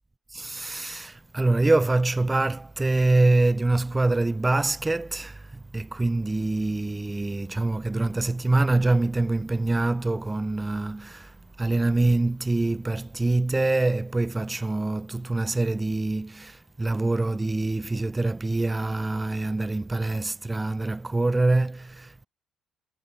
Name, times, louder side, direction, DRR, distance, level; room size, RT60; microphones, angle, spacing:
voice 1, 0.3-22.3, right 2 dB, 15° right, 0.4 m, -25 dB
supercardioid pair, 80°, 0 cm